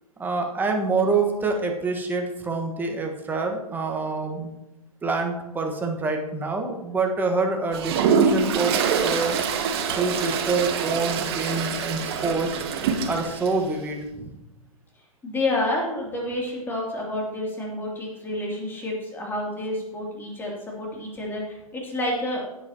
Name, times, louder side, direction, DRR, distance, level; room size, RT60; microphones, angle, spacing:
voice 1, 0.2-4.5 5.0-9.4 9.9-12.6 13.1-14.3, right 3 dB, 10° right, 2 dB, 1.4 m, -26 dB
Toilet flush, 7.7-13.5, right 6 dB, 40° right, 1.2 m, -25 dB
voice 2, 15.2-22.5, left 1 dB, 10° left, -3 dB, 2.8 m, -29 dB
17.0 x 8.3 x 2.9 m, 0.94 s
figure-of-eight pair, 120°, 19 cm